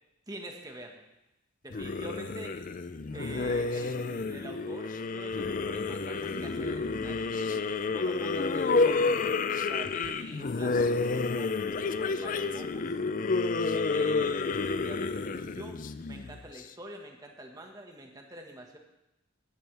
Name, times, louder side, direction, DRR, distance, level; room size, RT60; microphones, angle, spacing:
voice 1, 0.3-1.0 1.6-2.5 3.1-9.2 9.5-12.9 13.7-15.8 16.1-18.8, right 1 dB, 20° right, 2 dB, 1.6 m, -46 dB
sound 1, 1.7-16.6, left 4 dB, 45° left, 0.5 m, -30 dB
15.5 x 11.5 x 3.4 m, 0.92 s
head